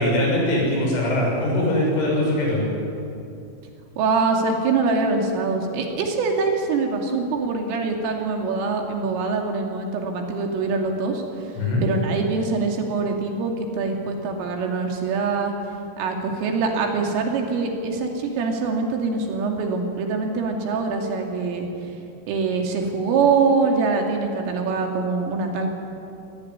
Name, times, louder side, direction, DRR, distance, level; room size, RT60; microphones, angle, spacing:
voice 1, 0.0-2.6 11.6-11.8, left 1 dB, 75° left, -2 dB, 9.7 m, -21 dB
voice 2, 4.0-15.5 16.0-21.7 22.3-25.8, right 4 dB, 85° right, 2 dB, 5.3 m, -24 dB
24.5 x 19.5 x 9.9 m, 2.6 s
omnidirectional pair, 5.7 m